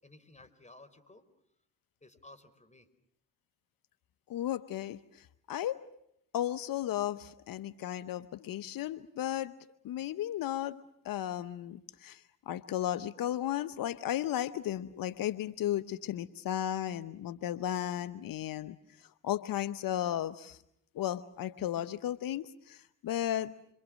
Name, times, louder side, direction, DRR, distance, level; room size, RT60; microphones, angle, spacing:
voice 1, 0.0-1.2 2.0-2.9, left 2 dB, 20° left, 12 dB, 4.7 m, -55 dB
voice 2, 4.3-5.8 6.3-9.5 9.8-20.6 20.9-23.5, left 12 dB, 80° left, 14 dB, 0.9 m, -35 dB
27.5 x 26.0 x 6.3 m, 0.77 s
supercardioid pair, 55°, 33 cm